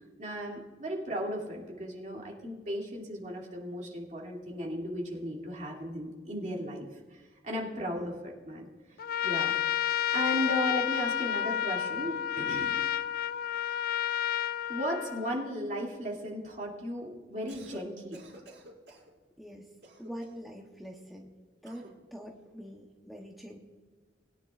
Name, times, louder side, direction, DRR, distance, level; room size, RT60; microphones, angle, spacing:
voice 1, 0.2-8.7 9.2-12.8 14.0-14.2 14.7-18.2, equal, 45° right, -1 dB, 2.5 m, -36 dB
Trumpet, 9.0-15.5, left 10 dB, 55° left, 0.3 m, -31 dB
Cough, 17.3-17.9 18.1-19.1 19.8-20.5 21.6-22.0, right 1 dB, 75° right, 4.0 m, -52 dB
voice 2, 20.0-21.3 21.6-23.6, equal, ahead, 0 dB, 0.9 m, -44 dB
21.5 x 9.7 x 2.4 m, 1.4 s
head